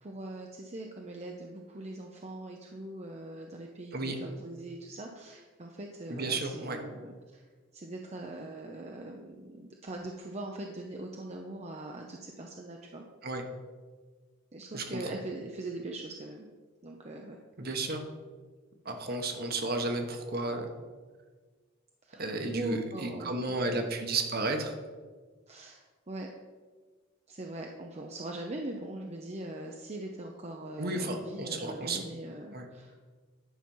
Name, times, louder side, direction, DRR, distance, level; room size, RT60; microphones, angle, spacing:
voice 1, 0.0-7.5 7.7-13.0 14.5-16.5 16.8-17.4 22.0-22.3 22.5-23.8 25.5-26.3 27.3-33.0, right 2 dB, 35° right, 1 dB, 0.7 m, -41 dB
voice 2, 6.1-6.8 13.2-13.5 14.7-15.1 17.6-18.0 18.8-20.7 22.2-24.7 30.8-32.0 32.5-32.7, right 2 dB, 50° right, 4 dB, 1.2 m, -33 dB
10.0 x 6.1 x 5.5 m, 1.4 s
head